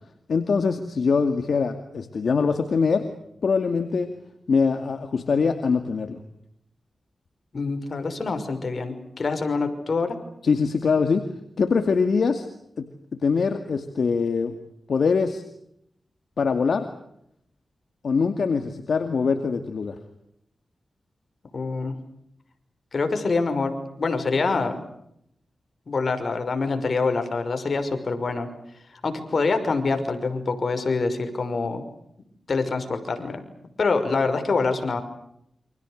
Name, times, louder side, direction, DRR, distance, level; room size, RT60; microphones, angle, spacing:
voice 1, 0.3-3.1 3.4-4.1 4.5-6.2 10.4-11.2 11.6-12.5 12.8-12.9 13.2-14.5 14.9-15.4 16.4-16.8 18.0-20.0, left 5 dB, 75° left, 7 dB, 2.3 m, -23 dB
voice 2, 7.5-10.2 21.5-22.0 22.9-24.8 25.9-28.5 29.0-31.8 32.5-33.4 33.8-35.0, left 4 dB, 60° left, 7 dB, 5.7 m, -25 dB
29.0 x 26.5 x 6.6 m, 0.75 s
cardioid pair, 65°, 0 cm